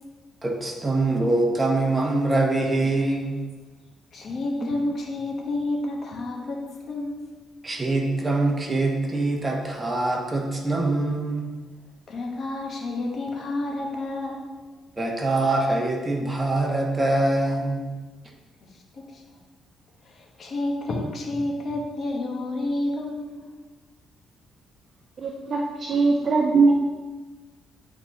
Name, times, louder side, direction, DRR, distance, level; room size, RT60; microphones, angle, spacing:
voice 1, 0.4-3.4 7.6-11.5 15.0-17.9, right 2 dB, 20° right, 0 dB, 1.2 m, -24 dB
voice 2, 4.1-7.2 12.1-14.5 18.9-19.2 20.0-23.4, left 2 dB, 50° left, 0 dB, 1.3 m, -30 dB
voice 3, 25.2-26.7, right 4 dB, 50° right, 0 dB, 0.6 m, -21 dB
8.7 x 4.1 x 3.1 m, 1.3 s
cardioid pair, 90°, 0 cm